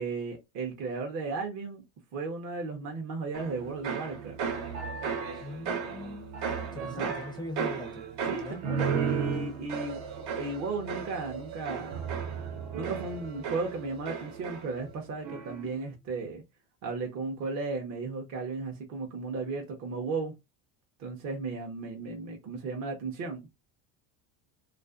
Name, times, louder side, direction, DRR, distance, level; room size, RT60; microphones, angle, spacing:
voice 1, 0.0-1.8 2.1-4.4 6.8-7.1 8.2-10.0 10.4-12.0 12.7-16.4 16.8-20.3 21.0-23.5, right 4 dB, 45° right, 0.7 m, -35 dB
sound 1, 3.3-14.9 15.2-15.7, right 6 dB, 75° right, 1.1 m, -35 dB
voice 2, 5.4-8.0 8.4-8.6, left 2 dB, 10° left, 0.4 m, -41 dB
2.4 x 2.4 x 2.3 m
supercardioid pair, 120°, 40 cm